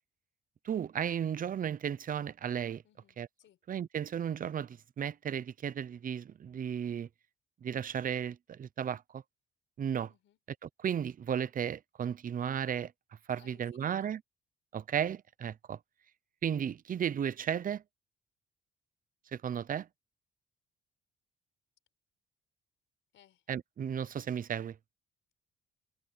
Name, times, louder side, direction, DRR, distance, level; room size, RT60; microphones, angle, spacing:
voice 1, 0.6-2.8 3.2-3.3 3.7-7.1 7.6-9.2 9.8-10.1 10.6-12.9 13.3-14.2 14.7-15.8 16.4-17.8 19.3-19.9 23.5-24.8, right 8 dB, 45° right, 0.7 m, -34 dB
voice 2, 2.8-3.6 10.1-10.4 13.4-14.1 23.1-23.4, left 12 dB, 80° left, 4.4 m, -64 dB
cardioid pair, 90°, 20 cm